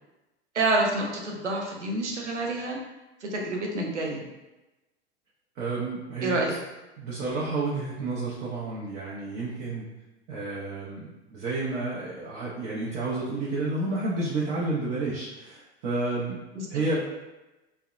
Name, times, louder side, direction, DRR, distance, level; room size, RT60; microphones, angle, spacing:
voice 1, 0.5-2.8 3.2-4.3 6.2-6.5 16.6-16.7, right 2 dB, 85° right, 0 dB, 0.5 m, -28 dB
voice 2, 5.6-6.4 7.0-9.9 10.3-16.4 16.7-17.0, right 2 dB, 35° right, -7 dB, 0.6 m, -30 dB
2.6 x 2.0 x 2.3 m, 1.0 s
figure-of-eight pair, 85°, 34 cm